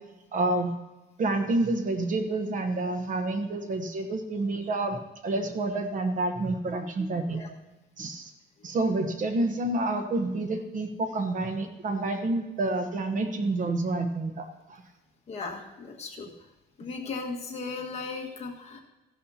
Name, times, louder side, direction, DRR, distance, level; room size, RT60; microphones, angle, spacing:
voice 1, 0.3-0.7 1.2-5.0 5.2-7.4 8.0-8.3 8.6-14.8, right 2 dB, 40° right, 7 dB, 1.0 m, -28 dB
voice 2, 15.3-16.3 16.8-18.8, left 4 dB, 35° left, -1 dB, 1.6 m, -36 dB
15.0 x 11.5 x 2.8 m, 1.1 s
cardioid pair, 155°, 20 cm